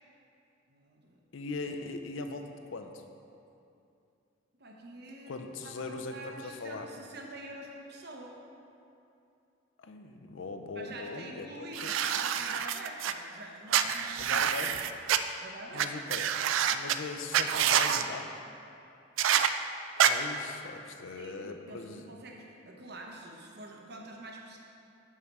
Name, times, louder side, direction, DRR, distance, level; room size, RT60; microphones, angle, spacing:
voice 1, 0.7-1.2 4.6-5.4 5.6-8.4 10.7-14.7 15.4-15.9 21.1-24.6, right 1 dB, 55° right, 0 dB, 0.9 m, -46 dB
voice 2, 1.3-3.0 5.3-6.9 9.8-11.9 14.2-14.7 15.7-16.3 16.7-18.3 20.1-22.0, left 3 dB, 75° left, 6 dB, 0.5 m, -40 dB
sound 1, 11.7-13.1 13.7-15.2 15.8-17.0 17.3-18.0 19.2-19.5 20.0-20.1, right 9 dB, 75° right, 0.3 m, -27 dB
6.4 x 5.6 x 4.7 m, 2.7 s
head